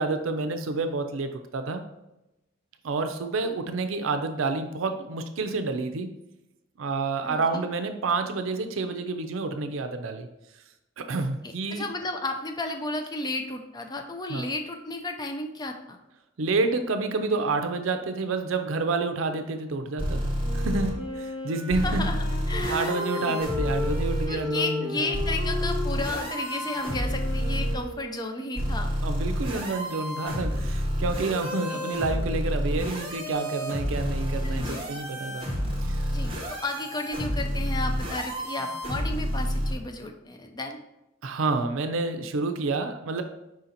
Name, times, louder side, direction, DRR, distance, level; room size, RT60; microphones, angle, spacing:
voice 1, 0.0-1.8 2.8-6.1 6.8-10.3 11.0-11.9 14.3-14.5 16.4-22.1 22.7-25.2 29.0-35.5 35.8-36.3 41.2-43.2, right 3 dB, 75° right, 7 dB, 0.5 m, -29 dB
voice 2, 7.2-7.6 11.7-16.0 21.8-22.2 22.5-23.4 24.3-28.9 31.7-31.8 34.4-34.8 36.1-40.8, left 2 dB, 20° left, 4 dB, 0.4 m, -33 dB
sound 1, 20.0-20.9 21.7-24.3 25.1-27.8 28.6-39.7, equal, 25° right, 1.0 m, -29 dB
Wind instrument woodwind instrument, 20.4-28.9, left 2 dB, 70° left, 1.3 m, -35 dB
4.9 x 2.8 x 3.9 m, 0.91 s
head